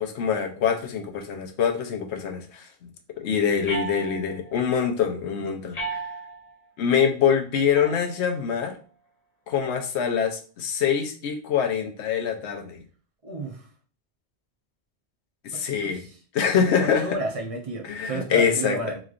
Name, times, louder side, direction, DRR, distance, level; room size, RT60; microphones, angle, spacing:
voice 1, 0.0-2.9 3.2-6.0 6.8-8.7 9.5-12.8 15.4-16.1 16.3-17.2 17.9-18.8, left 7 dB, 80° left, 5 dB, 0.9 m, -24 dB
sound 1, 3.6-4.5 5.7-6.5 7.7-8.6, right 3 dB, 40° left, 0.9 m, -35 dB
voice 2, 13.2-13.6 15.5-16.1 16.8-19.0, right 1 dB, 40° right, 1 dB, 0.6 m, -32 dB
4.0 x 3.1 x 2.5 m, 0.40 s
omnidirectional pair, 1.1 m